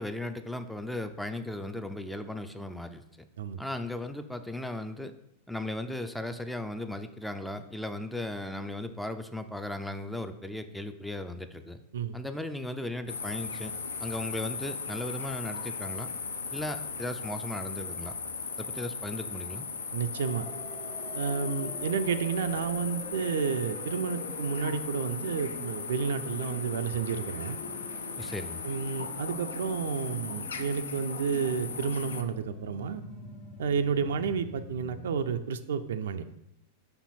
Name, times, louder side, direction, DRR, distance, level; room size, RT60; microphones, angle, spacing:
voice 1, 0.0-3.0 3.6-5.1 5.5-11.8 12.1-13.7 14.0-16.1 16.5-18.1 18.6-19.7 28.1-28.6, left 1 dB, ahead, 8 dB, 0.4 m, -36 dB
sound 1, 13.1-32.2, left 5 dB, 75° left, 0.5 m, -38 dB
voice 2, 19.9-20.5 21.1-27.6 28.6-33.0 33.6-36.2, right 6 dB, 65° right, 10 dB, 0.4 m, -31 dB
sound 2, 20.2-35.1, left 2 dB, 40° left, 1.3 m, -45 dB
5.4 x 4.4 x 4.1 m, 0.82 s
figure-of-eight pair, 90°, 0 cm